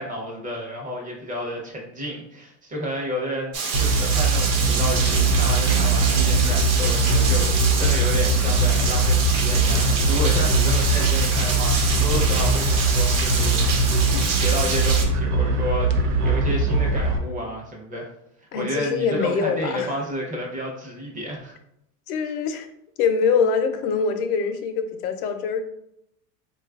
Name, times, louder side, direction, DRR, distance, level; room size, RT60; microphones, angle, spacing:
voice 1, 0.0-18.1 18.4-21.5, equal, 15° right, -1 dB, 0.7 m, -31 dB
Rain, 3.5-15.0, right 5 dB, 60° right, 1.0 m, -27 dB
sound 1, 3.7-17.2, right 2 dB, 85° right, 0.7 m, -21 dB
voice 2, 18.5-20.0 22.1-22.7 23.0-25.6, left 5 dB, 70° left, 7 dB, 0.7 m, -24 dB
3.9 x 2.4 x 2.3 m, 0.75 s
supercardioid pair, 125°, 46 cm